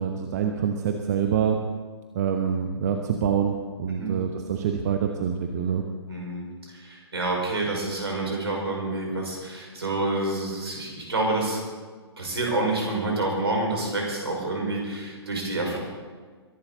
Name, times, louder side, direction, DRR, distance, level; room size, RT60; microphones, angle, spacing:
voice 1, 0.0-1.6 2.1-5.8, right 8 dB, 40° right, 4 dB, 1.0 m, -26 dB
voice 2, 3.9-4.2 6.1-6.5 6.7-11.6 12.2-15.8, right 2 dB, 65° right, 0 dB, 5.2 m, -28 dB
22.5 x 11.5 x 4.0 m, 1.5 s
figure-of-eight pair, 125°, 14 cm